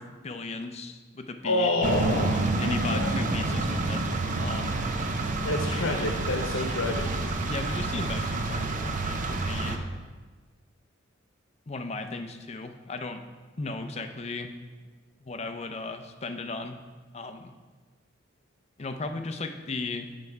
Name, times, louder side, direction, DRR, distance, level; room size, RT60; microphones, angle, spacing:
voice 1, 0.0-1.7 2.6-4.1 4.4-4.8 6.6-6.7 7.5-9.9 11.7-13.2 13.6-14.5 15.2-16.8 17.1-17.5 18.8-20.1, left 3 dB, 35° left, 7 dB, 0.5 m, -36 dB
voice 2, 1.4-3.3 5.4-7.1, left 2 dB, 90° left, 3 dB, 0.8 m, -28 dB
sound 1, 1.8-9.8, right 2 dB, 40° right, 0.6 m, -28 dB
7.6 x 5.6 x 4.6 m, 1.3 s
head